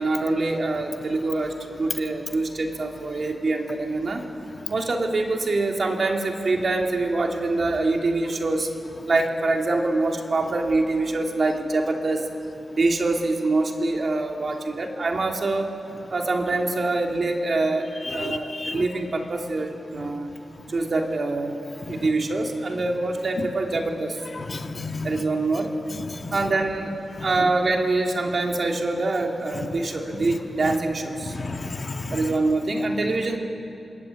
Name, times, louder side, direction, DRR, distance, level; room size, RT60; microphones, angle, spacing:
voice 1, 0.0-4.2 4.7-8.7 9.1-12.2 12.7-15.7 16.1-20.3 20.7-21.6 21.9-24.2 25.0-25.7 26.3-31.3 32.1-33.4, right 2 dB, 50° right, 2 dB, 2.8 m, -25 dB
voice 2, 18.1-18.8 21.9-22.0 24.5-25.1 26.2-26.3 31.3-32.2, left 3 dB, 40° left, 5 dB, 1.6 m, -32 dB
26.0 x 21.5 x 9.5 m, 2.8 s
wide cardioid pair, 100°, 0 cm